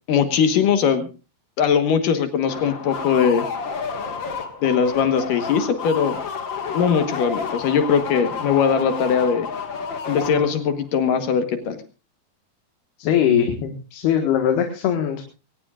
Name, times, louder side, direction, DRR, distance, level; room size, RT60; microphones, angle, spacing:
voice 1, 0.1-1.1 1.6-3.5 4.6-6.2 6.7-9.5 10.1-11.8, left 7 dB, 65° left, 9 dB, 2.7 m, -20 dB
sound 1, 2.5-10.8, left 5 dB, 45° left, 1.7 m, -30 dB
voice 2, 13.0-15.2, left 9 dB, 85° left, 5 dB, 3.6 m, -21 dB
22.5 x 18.5 x 2.4 m, 0.32 s
omnidirectional pair, 4.5 m